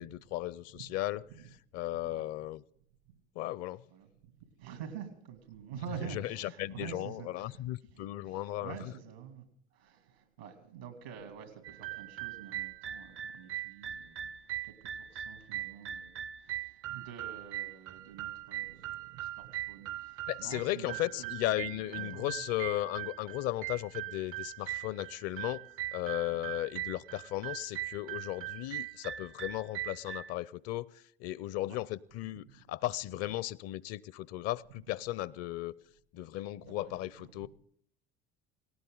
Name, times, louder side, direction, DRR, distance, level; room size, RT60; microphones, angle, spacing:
voice 1, 0.0-1.2 1.7-2.6 3.4-3.8 6.1-8.7 20.3-25.6 25.9-30.9 31.2-35.7 36.1-37.5, left 15 dB, 55° left, 22 dB, 0.6 m, -36 dB
voice 2, 1.9-2.3 3.1-3.2 3.9-7.6 7.9-22.4 26.3-26.5 31.7-31.8 32.5-32.6 34.7-34.9 36.6-36.9 37.2-37.5, right 8 dB, 85° right, 6 dB, 2.8 m, -48 dB
sound 1, 11.6-30.3, right 13 dB, 45° right, 0.5 m, -41 dB
18.0 x 17.5 x 3.9 m, 0.68 s
hypercardioid pair, 70°, 30 cm